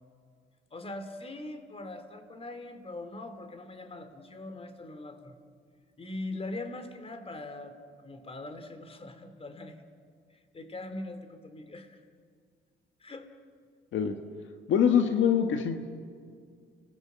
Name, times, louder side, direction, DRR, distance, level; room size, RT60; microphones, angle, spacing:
voice 1, 0.7-5.3 6.0-7.8 8.0-9.8 10.3-12.0 13.0-13.3, left 2 dB, 30° left, 8 dB, 3.1 m, -41 dB
voice 2, 14.7-15.8, left 8 dB, 75° left, 5 dB, 1.6 m, -24 dB
30.0 x 20.0 x 7.5 m, 2.1 s
cardioid pair, 90°, 20 cm